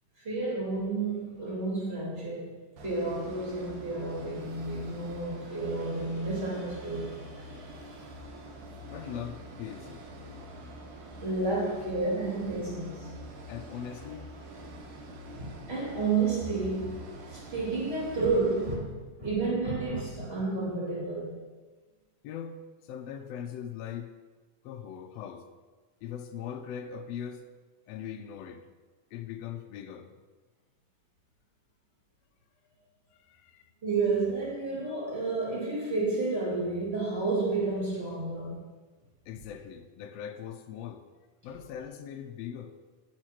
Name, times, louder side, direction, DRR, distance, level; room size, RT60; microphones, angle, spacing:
voice 1, 0.2-8.0 11.2-13.3 15.3-21.4 33.8-38.6, right 3 dB, 20° right, 2.3 m, -31 dB
sound 1, 2.8-18.8, right 1 dB, 75° right, 2.5 m, -45 dB
voice 2, 8.9-10.0 13.5-14.3 22.2-24.1 24.6-25.5 26.0-27.5 27.9-28.7 29.1-30.1 33.1-33.7 39.3-41.0 41.4-42.7, left 8 dB, 85° left, 1.4 m, -40 dB
12.0 x 6.6 x 3.0 m
omnidirectional pair, 3.6 m